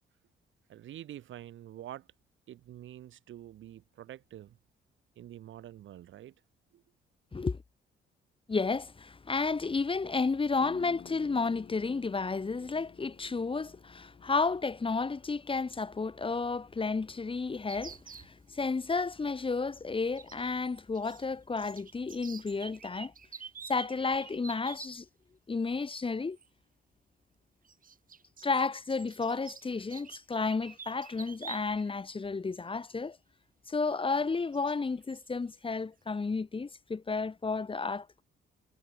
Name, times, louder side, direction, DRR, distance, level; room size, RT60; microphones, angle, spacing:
voice 1, 0.7-2.1 2.5-4.6 5.2-6.3 6.7-6.8, right 12 dB, 75° right, 4.9 m, -47 dB
voice 2, 8.5-23.1 23.7-25.1 25.5-26.4 28.4-33.2 33.7-38.2, left 4 dB, 25° left, 1.8 m, -32 dB
sound 1, 10.6-16.0, left 9 dB, 60° left, 3.2 m, -53 dB
sound 2, 17.7-18.3 20.2-21.2 21.5-24.9 26.3-26.5 27.7-31.9 32.3-32.4 33.8-33.9 34.5-34.8 35.1-35.3, right 6 dB, 45° right, 5.8 m, -48 dB
cardioid pair, 90°, 20 cm